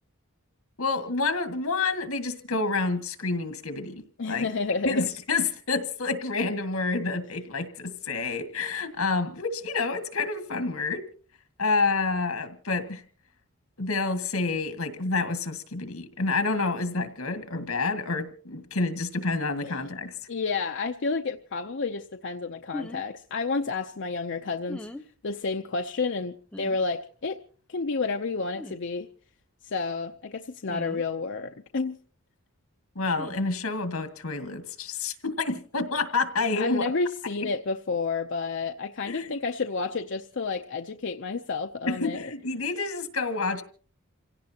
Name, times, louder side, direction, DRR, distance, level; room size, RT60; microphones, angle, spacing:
voice 1, 0.8-4.5 4.8-11.0 11.6-13.0 13.8-20.1 33.0-36.9 39.1-39.4 41.9-43.6, left 3 dB, 80° left, 8 dB, 2.0 m, -28 dB
voice 2, 4.2-5.1 19.6-19.8 20.3-24.9 25.2-27.4 27.7-29.1 29.6-32.0 36.6-42.3, left 4 dB, 55° left, 5 dB, 0.7 m, -30 dB
sound 1, 22.7-23.0 24.7-25.1 26.5-26.8 28.5-28.8 30.7-31.0 33.1-33.4, left 1 dB, 5° left, 0.8 m, -38 dB
28.0 x 17.0 x 2.9 m, 0.42 s
head